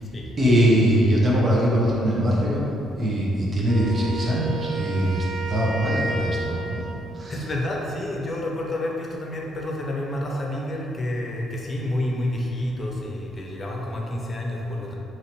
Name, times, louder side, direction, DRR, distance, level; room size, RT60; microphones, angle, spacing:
voice 1, 0.4-2.7 2.9-6.8 7.1-7.5, equal, 40° right, -5 dB, 0.8 m, -22 dB
Wind instrument woodwind instrument, 3.7-7.0, right 2 dB, 60° right, 0.4 m, -32 dB
voice 2, 7.3-14.9, left 1 dB, 40° left, -1 dB, 0.7 m, -29 dB
3.1 x 2.8 x 4.2 m, 2.9 s
hypercardioid pair, 55°, 0 cm